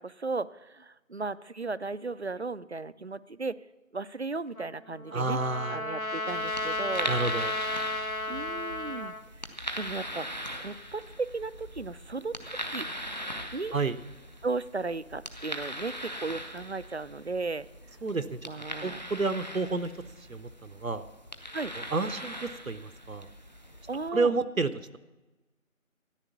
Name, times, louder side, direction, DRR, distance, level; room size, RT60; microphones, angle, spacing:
voice 1, 0.0-3.6 3.9-5.4 5.7-7.1 8.3-10.3 10.6-12.9 13.5-13.7 14.4-17.7 18.4-19.1 21.5-21.7 23.9-24.3, right 3 dB, 55° right, 17 dB, 0.5 m, -35 dB
Trumpet, 4.5-9.2, left 2 dB, 80° left, 1.6 m, -33 dB
voice 2, 5.1-5.8 7.1-7.6 13.7-14.0 18.0-18.4 18.8-19.9 20.3-21.0 21.7-23.3 24.1-25.0, right 3 dB, 75° right, 12 dB, 0.8 m, -30 dB
sound 1, 6.3-24.1, equal, 30° left, 0.9 m, -41 dB
13.0 x 11.0 x 7.1 m, 1.1 s
figure-of-eight pair, 165°, 41 cm